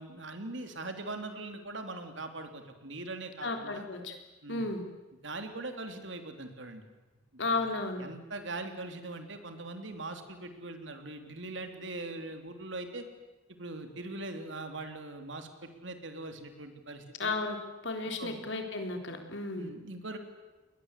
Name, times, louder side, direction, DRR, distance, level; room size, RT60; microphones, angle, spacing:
voice 1, 0.0-3.9 4.4-4.7 5.2-6.8 7.3-7.7 8.0-13.0 13.6-17.3 18.2-18.4 19.6-20.2, right 2 dB, 65° right, 6 dB, 3.2 m, -41 dB
voice 2, 3.4-4.1 4.5-4.8 7.4-8.0 17.2-17.6 17.8-19.7, left 3 dB, 65° left, 4 dB, 3.9 m, -33 dB
29.5 x 21.0 x 8.3 m, 1.1 s
head